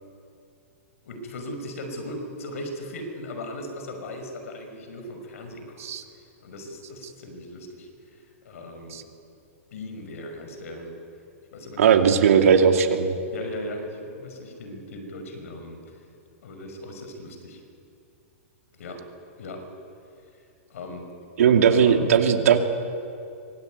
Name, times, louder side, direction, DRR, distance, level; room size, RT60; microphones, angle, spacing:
voice 1, 1.0-5.8 6.4-9.0 9.7-10.9 11.5-12.5 13.3-16.0 16.4-17.6 18.7-19.0 19.4-19.6 20.7-21.1 21.7-21.9, left 1 dB, 75° left, 5 dB, 5.7 m, -38 dB
voice 2, 11.8-13.2 21.4-22.6, right 7 dB, 75° right, 5 dB, 2.5 m, -18 dB
24.5 x 18.5 x 9.4 m, 2.5 s
hypercardioid pair, 145°, 8 cm